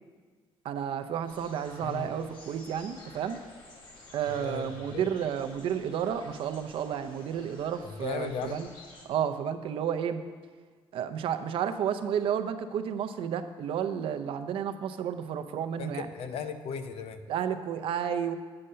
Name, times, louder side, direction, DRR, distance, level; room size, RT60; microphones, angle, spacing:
voice 1, 0.6-3.4 4.1-8.7 9.1-10.2 10.9-16.1 17.3-18.3, right 8 dB, 65° right, 9 dB, 0.6 m, -31 dB
sound 1, 1.3-9.0, left 2 dB, 50° left, 1.5 m, -52 dB
voice 2, 4.3-5.1 7.8-8.6 15.8-17.2, left 6 dB, 75° left, 9 dB, 0.7 m, -37 dB
8.7 x 6.5 x 5.6 m, 1.5 s
cardioid pair, 160°, 10 cm